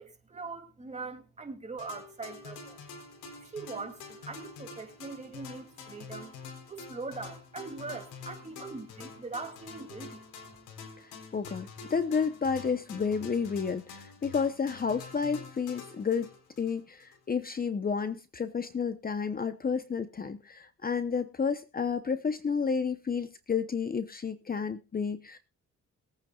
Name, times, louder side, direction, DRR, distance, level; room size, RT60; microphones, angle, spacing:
voice 1, 0.0-2.8 3.4-6.3 6.7-10.2, right 4 dB, 25° right, 2.8 m, -41 dB
sound 1, 1.8-17.2, left 5 dB, 80° left, 4.0 m, -47 dB
voice 2, 11.0-16.3 16.6-25.4, left 6 dB, 30° left, 0.9 m, -31 dB
22.0 x 9.2 x 2.4 m
cardioid pair, 90°, 30 cm